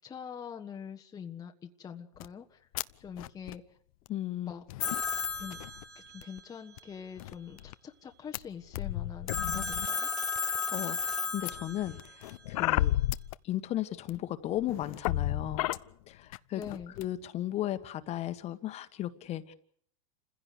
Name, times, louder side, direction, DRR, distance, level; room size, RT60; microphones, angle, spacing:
voice 1, 0.0-2.6 3.0-3.6 4.5-4.6 5.4-5.6 5.9-10.1 16.6-17.0, left 7 dB, 20° left, 4 dB, 1.3 m, -44 dB
sound 1, 2.2-2.3 2.7-2.8 3.1-3.6 4.1-4.2 4.7-5.8 6.2-6.4 6.8-6.9 7.2-7.7 8.3-8.4 8.7-9.9 10.3-10.8 11.4-13.3 14.1-14.2 14.6-15.8 16.3-16.4 16.6-17.0, left 15 dB, 70° left, 0.9 m, -33 dB
voice 2, 4.1-4.5 10.2-13.0 13.4-15.7 16.1-16.6 17.0-19.5, left 13 dB, 35° left, 11 dB, 1.6 m, -35 dB
Telephone, 4.8-6.3 9.3-12.1, left 4 dB, 5° left, 2.4 m, -34 dB
28.5 x 16.0 x 8.3 m, 0.63 s
supercardioid pair, 130°, 19 cm